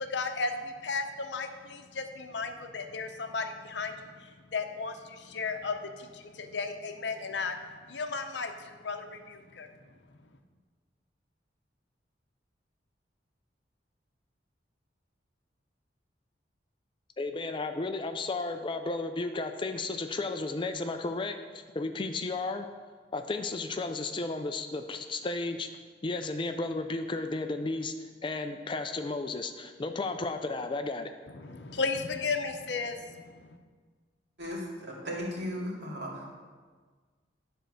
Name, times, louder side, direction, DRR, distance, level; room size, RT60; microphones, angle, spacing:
voice 1, 0.0-7.6 7.9-9.7 31.3-33.6, left 4 dB, 70° left, 6 dB, 0.7 m, -35 dB
voice 2, 17.2-22.7 23.1-25.7 26.0-27.9 28.2-31.1, left 3 dB, 25° left, 7 dB, 0.4 m, -33 dB
voice 3, 34.4-36.3, equal, 70° right, -4 dB, 2.4 m, -36 dB
10.5 x 4.4 x 6.5 m, 1.5 s
head